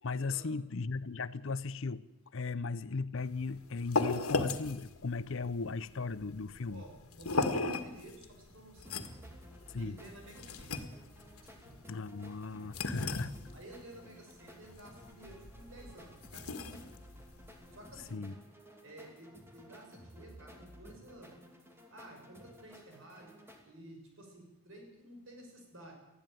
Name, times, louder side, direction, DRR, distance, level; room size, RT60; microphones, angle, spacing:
voice 1, 0.0-2.0 2.3-6.8 9.7-10.0 11.9-13.3 18.1-18.3, left 4 dB, 60° left, 0.6 m, -37 dB
sound 1, 3.2-18.2, left 3 dB, 75° left, 1.9 m, -38 dB
voice 2, 6.7-9.0 9.7-10.8 11.4-11.8 13.5-17.0 17.7-18.3 18.8-21.4 21.9-25.9, right 1 dB, 60° right, 6.2 m, -53 dB
sound 2, 8.8-23.6, equal, 10° right, 2.7 m, -55 dB
20.0 x 14.5 x 9.1 m
head